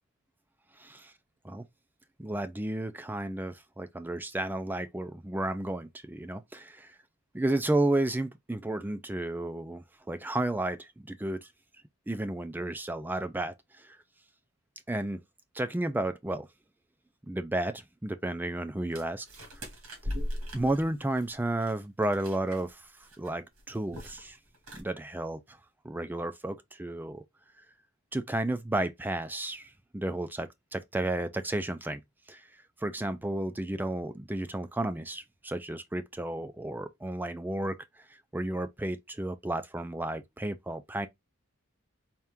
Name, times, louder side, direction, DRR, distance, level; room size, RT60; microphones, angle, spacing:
voice 1, 0.8-1.1 1.4-1.6 2.2-7.0 7.3-11.5 12.1-14.0 14.9-15.2 15.5-16.5 17.3-19.3 19.6-19.7 20.5-22.9 23.2-24.4 24.7-25.6 25.8-27.2 28.1-32.0 32.3-32.5 32.8-41.1, right 1 dB, 10° right, 0.3 m, -32 dB
sound 1, 18.9-22.7 23.0-23.3 23.6-24.3 24.5-24.8, equal, 85° right, 1.9 m, -39 dB
4.3 x 2.5 x 3.5 m
head